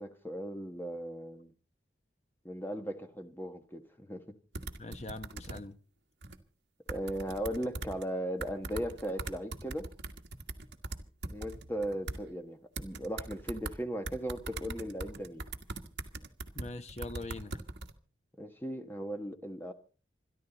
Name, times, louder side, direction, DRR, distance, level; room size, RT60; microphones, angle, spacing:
voice 1, 0.0-1.5 2.4-4.2 6.9-9.9 11.3-15.4 18.4-19.7, equal, 10° left, 1.4 m, -37 dB
sound 1, 4.5-5.6 6.2-6.4 6.9-8.0 8.4-12.2 12.8-13.7 14.0-17.9, right 2 dB, 70° right, 1.5 m, -40 dB
voice 2, 4.8-5.8 16.5-17.6, left 2 dB, 35° left, 1.0 m, -42 dB
27.0 x 11.0 x 4.0 m
head